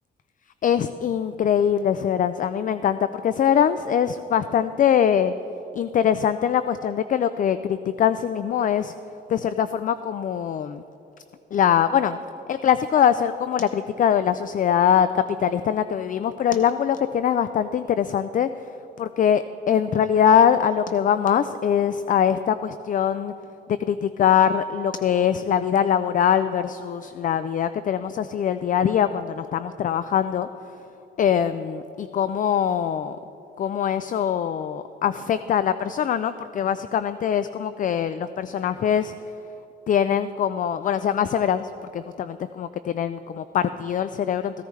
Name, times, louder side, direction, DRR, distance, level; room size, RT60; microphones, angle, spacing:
voice 1, 0.6-5.3 5.7-8.9 9.3-10.8 11.5-12.2 12.5-18.5 19.0-23.3 23.9-30.5 31.2-33.2 33.6-39.1 39.9-44.6, left 8 dB, 45° left, 12 dB, 0.4 m, -22 dB
15.0 x 14.0 x 3.2 m, 2.9 s
cardioid pair, 90°, 20 cm